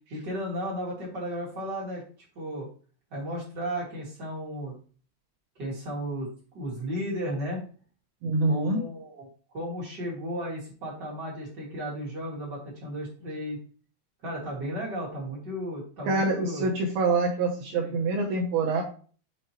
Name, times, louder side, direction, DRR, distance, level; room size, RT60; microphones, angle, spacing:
voice 1, 0.1-2.0 2.3-2.7 3.1-4.7 5.6-6.3 6.5-7.6 8.5-9.3 9.5-13.6 14.2-16.7 17.7-17.9, equal, 45° right, -4 dB, 1.4 m, -34 dB
voice 2, 8.2-8.8 16.1-18.8, right 3 dB, 80° right, 0 dB, 2.2 m, -25 dB
7.6 x 4.7 x 3.0 m, 0.40 s
omnidirectional pair, 5.6 m